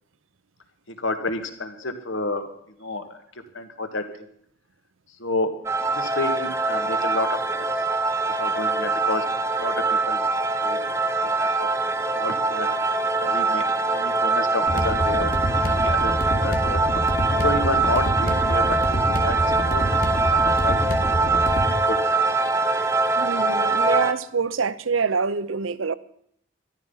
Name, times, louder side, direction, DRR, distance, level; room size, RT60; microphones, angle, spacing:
voice 1, 0.9-3.0 3.5-4.3 5.2-5.5 5.8-7.8 8.4-9.3 9.6-10.8 11.2-12.7 13.2-16.8 17.3-19.4 19.6-22.5, left 2 dB, 75° left, 1.8 m, -31 dB
sound 1, 5.6-24.1, right 3 dB, 15° right, 0.6 m, -23 dB
sound 2, 14.7-21.7, equal, 45° left, 2.3 m, -26 dB
voice 2, 23.2-25.9, right 5 dB, 85° right, 0.7 m, -25 dB
13.5 x 12.5 x 5.6 m
head